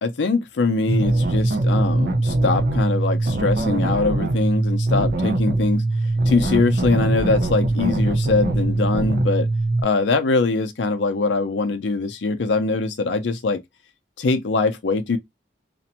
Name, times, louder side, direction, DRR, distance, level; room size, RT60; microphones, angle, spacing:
voice 1, 0.0-5.8 6.3-9.5 9.8-13.6 14.2-15.2, left 3 dB, 85° left, 0.5 m, -22 dB
sound 1, 0.9-9.8, right 2 dB, 60° right, 0.5 m, -21 dB
2.5 x 2.1 x 2.8 m
head